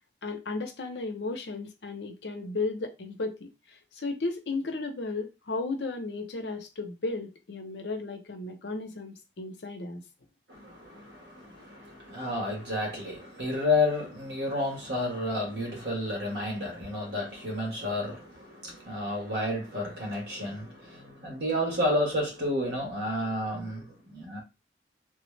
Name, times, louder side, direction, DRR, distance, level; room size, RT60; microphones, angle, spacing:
voice 1, 0.2-10.0, left 3 dB, 80° left, 0.7 m, -34 dB
voice 2, 10.5-24.4, left 1 dB, 80° right, 1.5 m, -31 dB
3.2 x 2.1 x 3.2 m
head